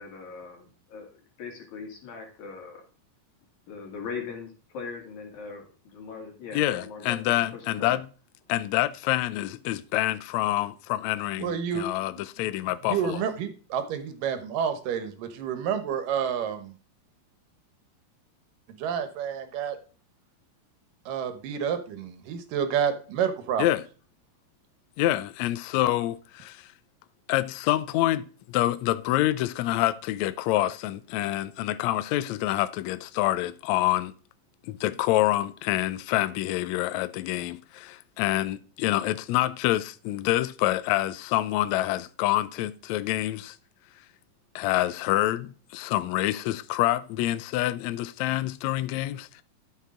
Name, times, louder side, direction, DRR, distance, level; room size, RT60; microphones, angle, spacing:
voice 1, 0.0-2.8 3.7-8.0, left 5 dB, 60° left, 3.7 m, -40 dB
voice 2, 6.5-8.1 8.5-13.2 23.6-23.8 25.0-26.7 27.3-34.1 34.7-43.6 44.6-49.4, left 15 dB, 90° left, 1.5 m, -27 dB
voice 3, 11.4-11.9 12.9-16.8 18.7-19.8 21.1-23.7, right 8 dB, 75° right, 2.7 m, -29 dB
12.5 x 6.5 x 3.8 m
omnidirectional pair, 4.0 m